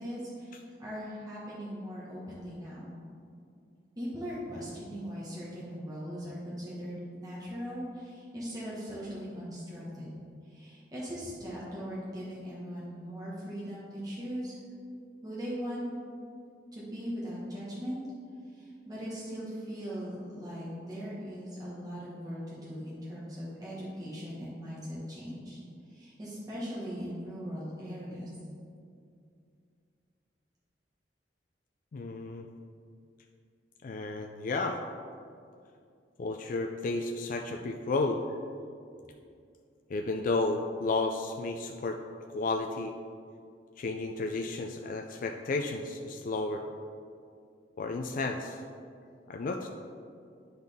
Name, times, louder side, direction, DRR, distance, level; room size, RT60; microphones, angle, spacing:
voice 1, 0.0-3.0 4.0-10.2 10.5-14.5 15.2-15.9 16.7-18.0 18.5-25.6 25.9-28.3, equal, 20° right, -8 dB, 1.4 m, -39 dB
voice 2, 31.9-32.5 33.8-34.8 36.2-38.2 39.9-42.0 42.3-42.9 43.8-46.6 47.8-48.6 49.3-49.7, left 3 dB, 50° left, 3 dB, 0.4 m, -32 dB
11.0 x 4.0 x 3.5 m, 2.4 s
head